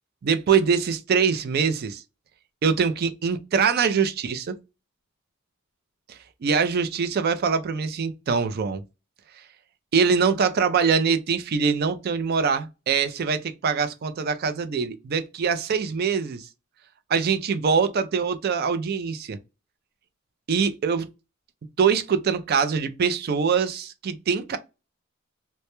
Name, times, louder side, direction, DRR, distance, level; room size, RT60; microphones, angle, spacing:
voice 1, 0.2-2.0 2.6-4.6 6.1-8.8 9.9-16.5 17.1-19.4 20.5-21.1 21.8-24.6, right 6 dB, 45° right, 0.3 m, -23 dB
2.1 x 2.1 x 2.8 m
head